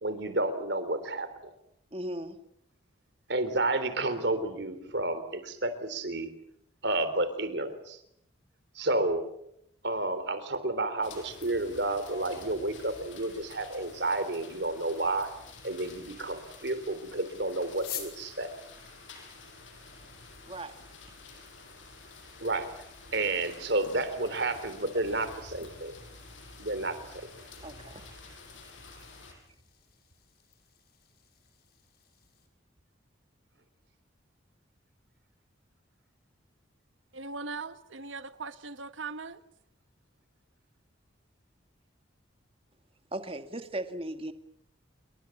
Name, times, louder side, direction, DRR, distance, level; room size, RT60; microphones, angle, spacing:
voice 1, 0.0-1.5 3.3-6.3 6.8-8.0 8.8-9.3 9.8-15.3 15.6-18.5 22.4-22.7 23.1-25.9 26.6-27.3 27.6-27.7, right 2 dB, 60° right, 12 dB, 3.6 m, -31 dB
voice 2, 1.9-2.4 20.5-20.8 24.9-25.0 27.6-28.1 43.1-44.3, right 1 dB, 30° right, 8 dB, 2.0 m, -37 dB
sound 1, 11.0-29.3, left 3 dB, 80° left, 6.9 m, -50 dB
sound 2, 17.7-32.5, left 11 dB, 50° left, 5.6 m, -51 dB
voice 3, 37.1-39.4, right 4 dB, 80° right, 11 dB, 1.5 m, -39 dB
28.5 x 23.5 x 7.3 m, 0.75 s
head